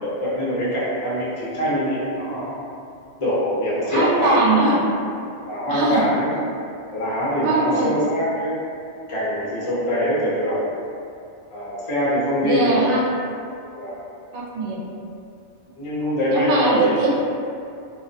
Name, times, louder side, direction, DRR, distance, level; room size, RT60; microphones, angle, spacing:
voice 1, 0.0-2.6 3.2-4.8 5.4-6.3 6.9-8.6 9.1-10.7 11.5-12.8 13.7-14.0 15.8-16.9, equal, 35° left, -8 dB, 0.5 m, -23 dB
voice 2, 3.8-4.8 5.7-6.0 7.4-7.9 12.4-13.0 14.3-14.8 16.3-17.1, right 2 dB, 75° right, -5 dB, 0.9 m, -21 dB
2.3 x 2.2 x 2.5 m, 2.5 s
omnidirectional pair, 1.2 m